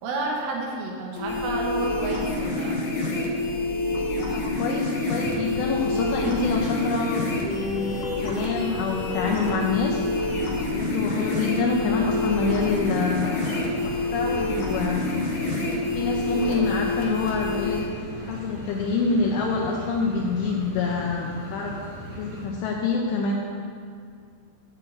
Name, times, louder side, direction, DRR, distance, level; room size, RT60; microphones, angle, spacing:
voice 1, 0.0-2.8, right 3 dB, 75° right, -1 dB, 2.9 m, -30 dB
sound 1, 1.2-17.8, left 2 dB, 65° left, 1.7 m, -27 dB
voice 2, 4.3-7.2 7.5-10.0 10.7-13.4 13.8-15.1 16.0-17.8 18.2-21.8 22.2-23.3, left 4 dB, 85° left, -1 dB, 2.5 m, -26 dB
sound 2, 4.9-22.5, left 1 dB, 55° right, 1.6 m, -39 dB
9.8 x 8.7 x 2.5 m, 2.2 s
omnidirectional pair, 5.5 m